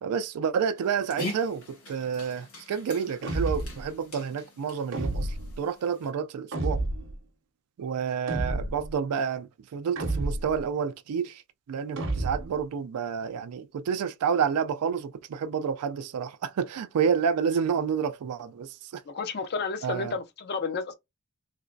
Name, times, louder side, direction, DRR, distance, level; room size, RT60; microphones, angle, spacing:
voice 1, 0.0-6.8 7.8-11.4 11.7-19.0 19.8-20.1, right 7 dB, 85° right, 0.3 m, -29 dB
Dog, 0.8-6.1, left 1 dB, 70° left, 1.5 m, -42 dB
sound 1, 3.2-3.9 4.9-5.6 6.5-7.2 8.3-8.9 10.0-10.6 12.0-12.6, right 2 dB, 60° right, 0.7 m, -30 dB
voice 2, 19.1-20.9, left 4 dB, 45° left, 0.5 m, -31 dB
3.2 x 2.9 x 2.6 m
head